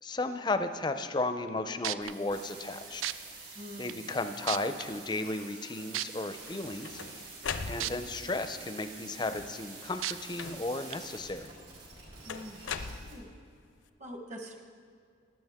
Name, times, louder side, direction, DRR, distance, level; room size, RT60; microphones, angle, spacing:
voice 1, 0.0-3.0 3.8-7.0 7.6-11.5, left 2 dB, 20° left, 9 dB, 0.4 m, -34 dB
sound 1, 1.5-1.6 1.8-2.1 3.0-3.1 3.9-4.0 4.5-4.8 5.9-6.1 7.8-7.9 8.4-8.5 10.0-10.1 10.9-11.0, right 13 dB, 85° right, 0.4 m, -32 dB
sound 2, 2.0-13.1, right 3 dB, 65° right, 3.6 m, -48 dB
voice 2, 3.5-4.1 7.6-8.0 12.2-13.3 14.0-14.6, equal, 35° right, 3 dB, 1.2 m, -46 dB
sound 3, 6.4-8.3 9.1-9.7 10.4-10.9 12.3-13.6, left 5 dB, 80° left, 0.6 m, -40 dB
15.5 x 11.5 x 3.6 m, 2.3 s
head